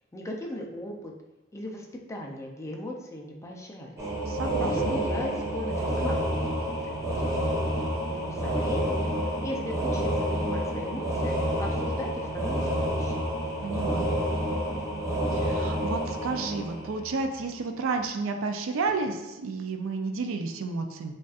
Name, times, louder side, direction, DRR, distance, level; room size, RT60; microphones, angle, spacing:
voice 1, 0.1-1.1 1.5-4.0 4.6-7.4 7.7-7.8 8.1-13.2, left 1 dB, 15° left, 0 dB, 0.4 m, -38 dB
sound 1, 4.0-17.4, equal, 15° right, 0.8 m, -29 dB
voice 2, 4.3-5.0 13.6-14.1 15.3-21.1, right 4 dB, 75° right, 5 dB, 0.4 m, -31 dB
5.1 x 2.5 x 2.4 m, 1.0 s
head